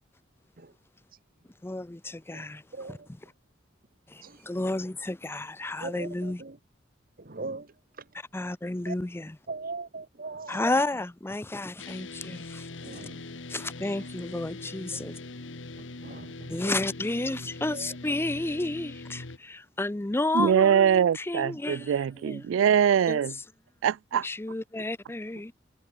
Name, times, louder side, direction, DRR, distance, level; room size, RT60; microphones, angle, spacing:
voice 1, 1.6-2.6 2.9-3.0 4.1-6.4 8.3-9.4 10.5-12.7 13.5-15.2 16.5-22.4 23.1-23.2 24.2-25.5, left 2 dB, 10° left, 0.5 m, -31 dB
voice 2, 2.3-3.1 4.2-4.4 5.8-6.6 7.2-8.0 8.9-9.0 9.5-10.7 12.8-13.4 13.9-14.1 14.9-15.0 15.8-16.7 17.7-18.0, right 3 dB, 50° right, 1.4 m, -41 dB
sound 1, 11.8-19.4, left 2 dB, 70° left, 1.5 m, -42 dB
voice 3, 20.3-23.3 23.8-24.3, right 8 dB, 85° right, 0.3 m, -23 dB
head